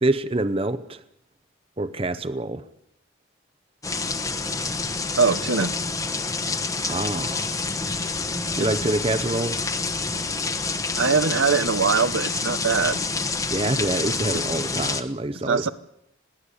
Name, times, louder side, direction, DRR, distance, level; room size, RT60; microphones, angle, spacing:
voice 1, 0.0-1.0 1.8-2.6 6.8-7.5 8.6-9.6 13.5-15.7, right 2 dB, 30° right, 13 dB, 0.8 m, -26 dB
sound 1, 3.8-15.0, left 4 dB, 15° left, 1.1 m, -28 dB
voice 2, 5.2-5.7 8.6-8.7 11.0-13.0 13.6-13.7 15.5-15.7, right 5 dB, 80° right, 13 dB, 1.0 m, -22 dB
21.5 x 17.0 x 8.5 m, 0.77 s
head